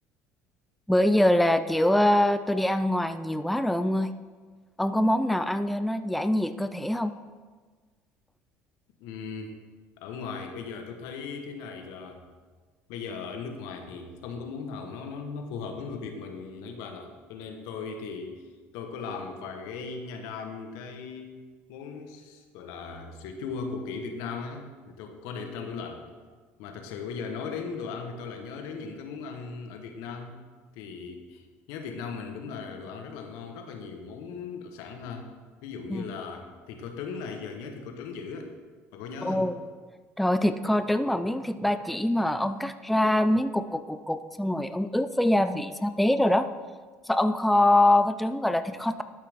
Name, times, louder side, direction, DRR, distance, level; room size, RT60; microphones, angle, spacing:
voice 1, 0.9-4.1 4.8-7.1 35.9-36.0 39.2-39.6 40.2-46.5 47.1-49.0, left 1 dB, ahead, 10 dB, 0.4 m, -24 dB
voice 2, 9.0-9.5 10.0-12.3 12.9-18.5 18.7-21.3 21.7-26.0 26.6-30.4 30.7-35.3 35.6-38.5 38.9-39.5, left 5 dB, 75° left, 5 dB, 1.1 m, -38 dB
12.0 x 5.8 x 3.6 m, 1.4 s
supercardioid pair, 80°, 6 cm